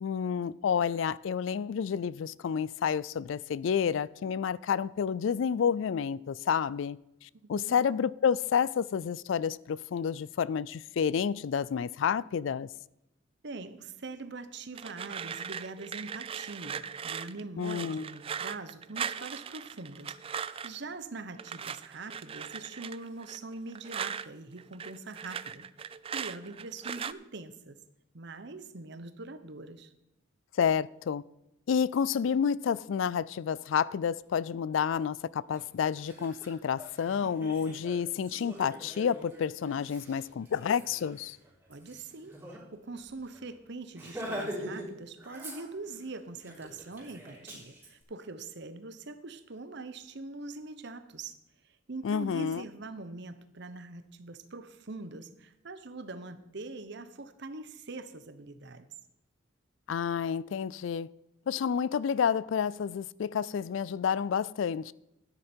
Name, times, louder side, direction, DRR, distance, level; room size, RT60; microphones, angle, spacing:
voice 1, 0.0-7.0 7.2-12.7 17.6-18.1 30.6-31.2 31.7-41.4 52.0-52.6 59.9-61.1 61.5-64.9, left 7 dB, 70° left, 0.3 m, -29 dB
voice 2, 13.4-25.7 26.1-27.8 28.1-29.9 41.7-51.4 51.6-58.9, right 3 dB, 60° right, 0.9 m, -43 dB
sound 1, 14.7-20.8 21.4-24.3 24.6-27.1, right 7 dB, 30° right, 0.3 m, -39 dB
Laughter, 35.5-35.6 36.0-42.6 42.9-43.0 43.3-43.5 43.9-44.9 45.2-46.0 46.4-47.9, equal, 10° right, 3.5 m, -43 dB
13.0 x 9.9 x 4.4 m
head